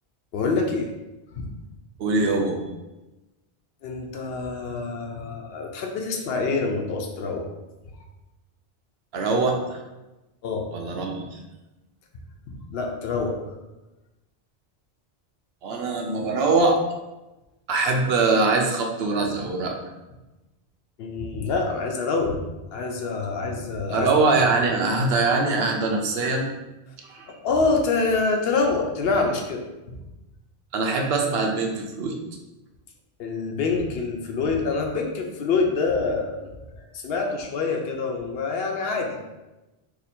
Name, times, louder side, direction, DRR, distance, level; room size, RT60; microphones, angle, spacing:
voice 1, 0.3-0.9 1.3-1.5 3.8-7.5 10.4-10.7 12.5-13.4 21.0-22.4 22.7-24.1 27.4-30.0 33.2-36.5 36.9-39.1, left 4 dB, 70° left, 3 dB, 0.8 m, -26 dB
voice 2, 2.0-2.6 9.1-9.8 10.7-11.4 15.6-16.8 17.7-19.7 23.9-26.5 27.0-27.3 30.7-32.2, right 3 dB, 75° right, 2 dB, 0.8 m, -23 dB
2.8 x 2.6 x 4.1 m, 1.0 s
omnidirectional pair, 1.1 m